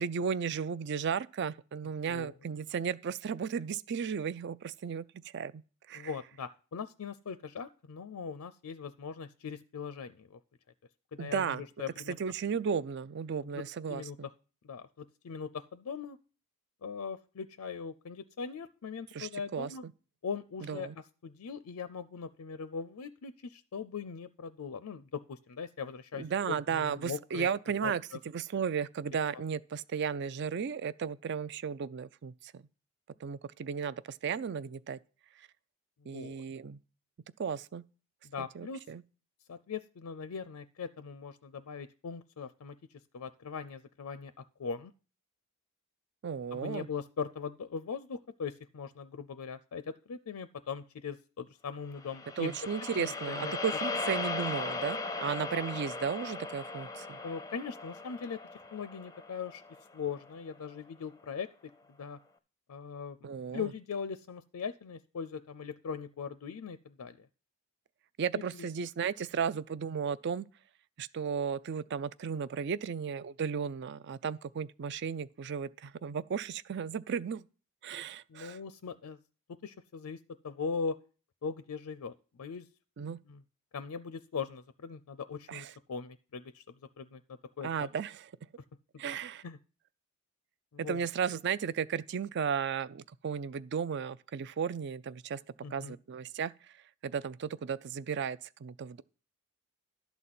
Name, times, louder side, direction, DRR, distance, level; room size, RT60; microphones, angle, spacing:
voice 1, 0.0-5.6 5.9-6.1 11.2-11.6 12.1-14.3 19.1-19.9 20.6-21.0 26.2-28.0 28.3-32.6 33.2-35.0 35.4-35.5 36.1-36.8 37.4-37.8 38.4-39.0 46.2-46.9 52.4-57.2 63.2-63.7 68.2-70.5 71.0-77.4 77.8-78.6 83.0-83.2 85.5-85.7 87.6-88.3 89.0-89.4 90.8-95.4 95.7-96.5 97.0-99.0, right 6 dB, 50° right, 0.4 m, -34 dB
voice 2, 5.9-10.4 11.1-12.1 13.5-13.6 13.9-14.2 14.6-16.2 16.8-19.8 20.2-20.9 21.2-27.5 27.8-28.2 36.0-36.4 38.2-38.9 39.5-42.8 43.1-44.9 46.5-52.6 53.0-53.5 57.2-58.4 58.7-59.6 59.9-61.5 62.0-62.2 62.7-63.2 63.5-67.3 68.3-68.7 78.3-79.2 79.6-81.0 81.4-82.7 83.3-83.4 83.7-86.6 87.0-87.9 89.4-89.6 90.7-91.1 95.6-96.0, left 6 dB, 85° left, 0.5 m, -40 dB
sound 1, 52.0-60.3, left 3 dB, 15° left, 0.5 m, -38 dB
11.5 x 4.1 x 7.6 m
head